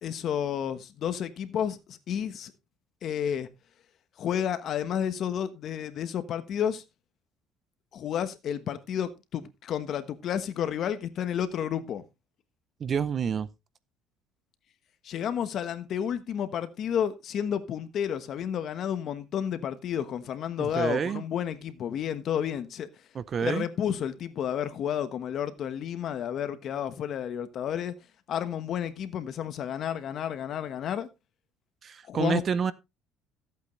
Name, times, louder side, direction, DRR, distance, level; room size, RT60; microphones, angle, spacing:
voice 1, 0.0-2.5 3.0-3.5 4.2-6.8 7.9-12.0 15.0-22.9 23.4-27.9 28.3-31.1 32.0-32.4, left 9 dB, 45° left, 1.2 m, -31 dB
voice 2, 12.8-13.5 20.6-21.2 23.1-23.7 31.8-32.7, right 7 dB, 35° right, 0.6 m, -28 dB
14.5 x 8.3 x 3.2 m
cardioid pair, 140°, 0 cm